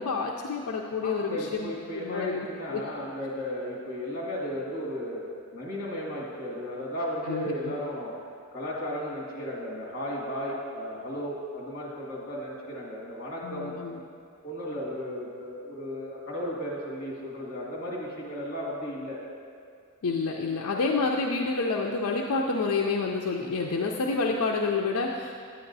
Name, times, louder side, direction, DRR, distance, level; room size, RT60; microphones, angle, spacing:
voice 1, 0.0-2.8 7.3-7.7 13.4-14.0 20.0-25.4, left 4 dB, 75° left, 0 dB, 0.4 m, -29 dB
voice 2, 1.0-5.3 5.5-8.1 8.5-13.7 14.4-19.2, equal, 40° left, -5 dB, 1.9 m, -34 dB
9.7 x 8.8 x 2.7 m, 2.3 s
head